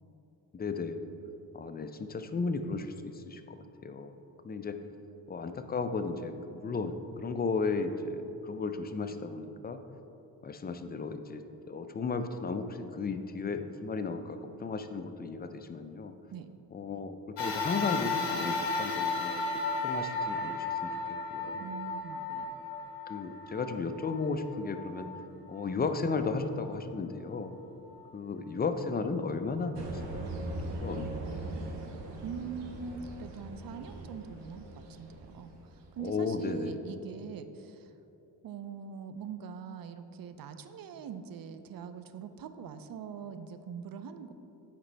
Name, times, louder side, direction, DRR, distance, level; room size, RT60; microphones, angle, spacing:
voice 1, 0.5-1.1 1.5-3.6 3.8-4.1 4.4-4.8 5.3-9.8 10.4-16.1 16.7-19.4 19.8-20.9 21.3-21.7 23.1-25.1 25.5-27.5 28.1-29.8 30.1-30.3 30.7-31.6 36.0-36.8, left 4 dB, 25° left, 8 dB, 0.4 m, -34 dB
sound 1, 17.4-26.0 26.6-26.7 27.8-27.9, left 3 dB, 75° left, 1.1 m, -34 dB
voice 2, 21.6-22.5 32.2-34.6 35.0-37.9 38.4-44.3, right 6 dB, 55° right, 10 dB, 0.5 m, -43 dB
sound 2, 29.8-36.2, right 2 dB, 85° right, 0.9 m, -40 dB
8.8 x 5.0 x 3.3 m, 2.9 s
cardioid pair, 70°, 41 cm